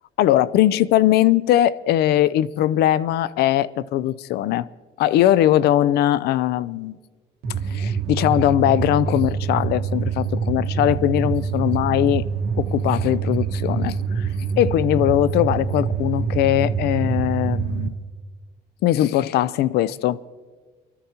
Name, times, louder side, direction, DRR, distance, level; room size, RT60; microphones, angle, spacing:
voice 1, 0.2-4.7 5.0-7.0 7.7-12.2 12.6-14.3 14.6-18.0 18.8-20.2, left 13 dB, 75° left, 0.5 m, -20 dB
sound 1, 7.4-17.9, right 6 dB, 70° right, 1.4 m, -25 dB
24.5 x 14.0 x 2.9 m
cardioid pair, 110°, 17 cm